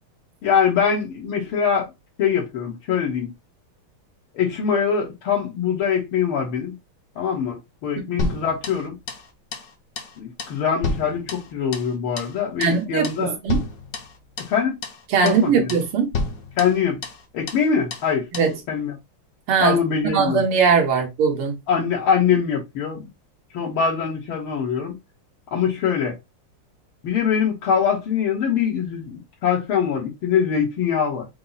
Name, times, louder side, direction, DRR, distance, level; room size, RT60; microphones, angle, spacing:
voice 1, 0.4-1.9 2.2-3.3 4.3-6.8 7.2-9.0 10.2-13.4 14.5-14.7 15.2-15.7 16.6-17.0 17.3-18.3 18.7-19.0 19.6-20.4 21.7-23.1 23.5-25.0 25.5-26.2 27.0-31.3, left 7 dB, 75° left, 2.0 m, -23 dB
sound 1, 8.2-9.3 9.5-9.7 10.0-10.1 10.4-11.9 12.2-12.4 12.6-12.8 13.0-13.2 13.5-14.6 14.8-15.0 15.3-15.4 15.7-15.9 16.1-17.2 17.5-17.6 17.9-18.1 18.3-18.5, left 3 dB, 55° left, 1.1 m, -30 dB
voice 2, 12.6-13.6 15.1-16.1 18.3-18.5 19.5-19.8 20.1-21.6, right 5 dB, 80° right, 2.0 m, -20 dB
5.4 x 2.0 x 3.9 m
omnidirectional pair, 2.3 m